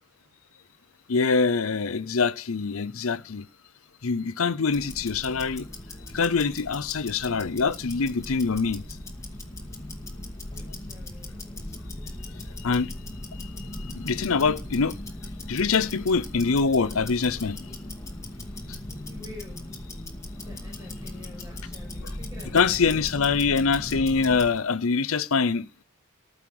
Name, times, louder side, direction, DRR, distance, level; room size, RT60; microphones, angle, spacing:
voice 1, 1.1-3.4 4.0-5.7 6.1-8.8 12.6-12.9 13.9-14.9 15.5-17.6 22.5-25.7, left 4 dB, 75° left, 0.7 m, -24 dB
Tick-tock, 4.7-24.6, left 1 dB, 15° left, 2.2 m, -38 dB
voice 2, 10.5-11.4 18.9-19.6 20.4-23.0, left 2 dB, 20° right, 6.2 m, -47 dB
14.5 x 6.4 x 7.8 m
head